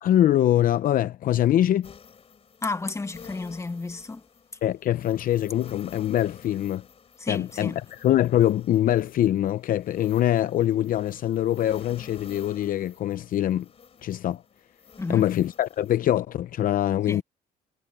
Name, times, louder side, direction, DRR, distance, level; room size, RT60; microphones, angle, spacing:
voice 1, 0.0-1.9 4.6-6.8 7.3-13.7 14.0-14.4 15.1-17.2, left 12 dB, 55° left, 0.7 m, -23 dB
sound 1, 1.8-16.0, left 6 dB, 35° left, 3.2 m, -50 dB
voice 2, 2.6-4.2 7.2-7.8 15.0-15.3 17.1-17.2, left 3 dB, 15° left, 1.8 m, -32 dB
cardioid pair, 110°, 17 cm